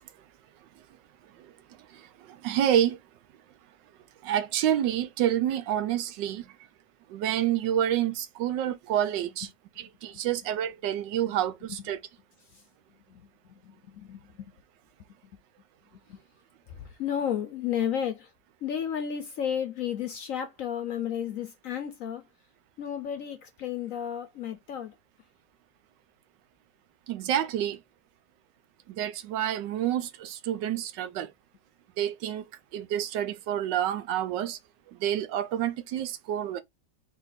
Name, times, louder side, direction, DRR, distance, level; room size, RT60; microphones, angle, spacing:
voice 1, 1.9-3.0 4.2-6.5 7.1-9.5 9.8-12.0 27.1-27.8 28.9-31.3 32.0-32.4 32.7-34.6 34.9-36.6, right 11 dB, 80° right, 1.3 m, -28 dB
voice 2, 13.6-14.5 16.1-16.2 17.0-18.3 18.6-22.2 22.8-24.9, left 9 dB, 65° left, 0.8 m, -32 dB
4.1 x 2.8 x 4.0 m
omnidirectional pair, 1.9 m